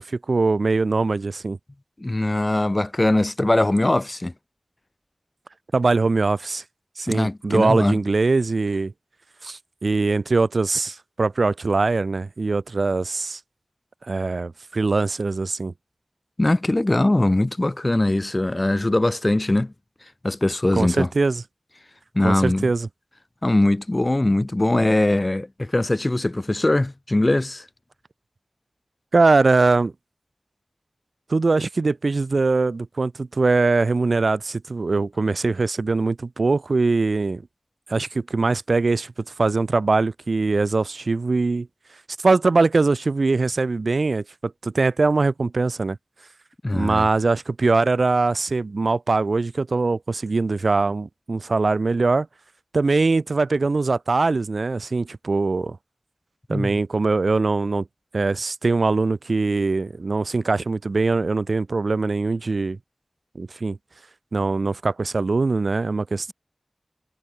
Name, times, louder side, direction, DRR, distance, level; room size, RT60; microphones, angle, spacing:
voice 1, 0.0-1.6 5.7-6.6 7.0-8.9 9.4-13.4 14.1-15.7 20.7-21.4 22.2-22.9 29.1-29.9 31.3-37.4 37.9-39.1 39.4-41.7 42.2-46.0 46.7-52.3 52.7-55.8 56.5-57.8 58.1-62.8 63.4-63.8 64.3-66.3, right 3 dB, 85° right, 1.2 m, -22 dB
voice 2, 2.0-4.3 7.1-8.0 16.4-19.7 20.2-21.1 22.1-22.7 23.4-27.6 46.6-47.1 56.5-56.8, left 1 dB, 35° left, 3.4 m, -21 dB
wide cardioid pair, 40°, 0 cm